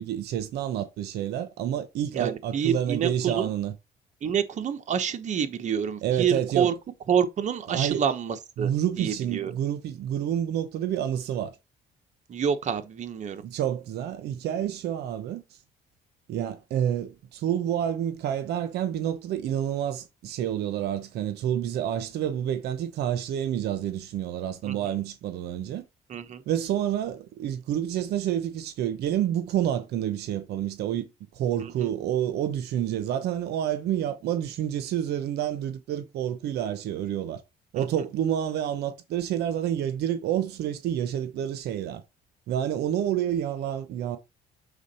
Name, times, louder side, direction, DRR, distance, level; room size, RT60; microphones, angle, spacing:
voice 1, 0.0-3.7 6.0-6.7 7.7-8.0 8.6-11.5 13.4-15.4 16.3-25.8 26.5-37.4 37.7-42.0 42.5-44.2, right 10 dB, 75° right, 0.8 m, -29 dB
voice 2, 2.1-3.5 4.2-6.7 7.1-8.7 9.0-9.5 12.3-13.4 24.6-24.8 26.1-26.4 31.6-31.9 37.8-37.9, right 7 dB, 45° right, 1.0 m, -27 dB
7.2 x 3.8 x 4.2 m
cardioid pair, 110°, 17 cm